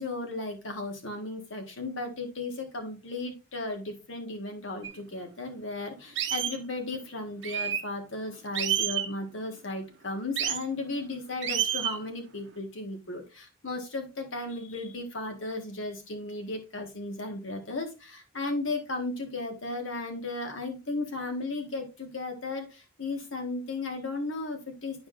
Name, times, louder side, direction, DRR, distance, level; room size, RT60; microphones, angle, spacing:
voice 1, 0.0-25.1, left 2 dB, 80° left, 4 dB, 1.7 m, -35 dB
sound 1, 4.8-4.9 5.5-5.6 6.2-6.6 7.4-7.8 8.5-9.1 10.4-10.6 11.4-12.0, right 10 dB, 70° right, 0.7 m, -29 dB
9.6 x 4.8 x 2.6 m, 0.28 s
head